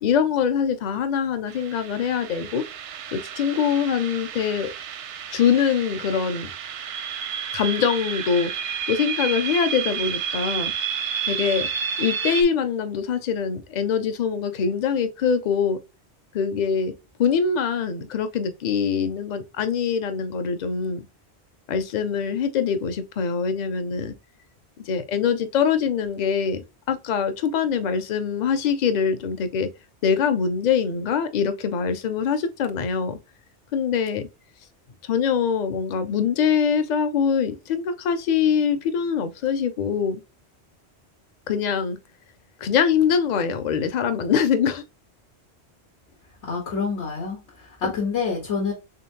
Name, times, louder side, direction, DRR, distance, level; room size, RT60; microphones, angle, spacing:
voice 1, 0.0-2.6 3.1-4.7 5.3-6.5 7.5-8.5 8.9-10.7 11.3-11.7 12.0-15.8 16.3-16.9 17.2-21.1 21.7-24.1 24.8-29.7 30.0-33.2 33.7-34.3 35.0-40.2 41.5-42.0 42.6-44.8 47.8-47.9, left 7 dB, 50° left, 0.6 m, -23 dB
sound 1, 1.5-12.4, right 7 dB, 85° right, 0.9 m, -31 dB
voice 2, 46.4-48.7, left 5 dB, 80° left, 1.5 m, -27 dB
3.7 x 3.3 x 2.7 m
omnidirectional pair, 1.2 m